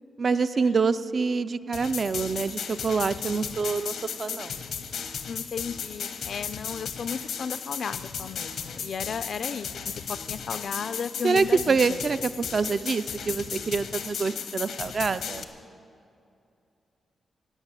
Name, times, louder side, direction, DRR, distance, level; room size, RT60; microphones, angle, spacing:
voice 1, 0.2-4.6 11.2-15.5, right 4 dB, 35° right, 13 dB, 0.3 m, -26 dB
sound 1, 1.7-15.4, left 7 dB, 85° left, 1.0 m, -35 dB
voice 2, 5.3-9.7 10.3-11.8, left 6 dB, 50° left, 14 dB, 0.4 m, -34 dB
16.5 x 9.1 x 8.1 m, 2.6 s
wide cardioid pair, 180°, 0 cm